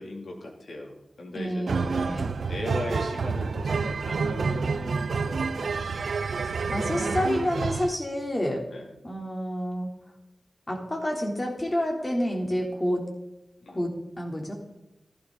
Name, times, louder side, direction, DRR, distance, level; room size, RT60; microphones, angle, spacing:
voice 1, 0.0-1.9 2.5-6.0 6.7-7.2 8.7-8.9 13.6-13.9, left 2 dB, 85° left, 0 dB, 3.0 m, -38 dB
voice 2, 1.3-2.3 6.7-8.6 9.0-9.9 10.7-13.0 13.7-14.5, equal, 25° left, 0 dB, 3.5 m, -29 dB
sound 1, 1.7-7.9, right 5 dB, 90° right, 0.6 m, -28 dB
16.0 x 15.0 x 4.1 m, 0.93 s
wide cardioid pair, 75°, 0 cm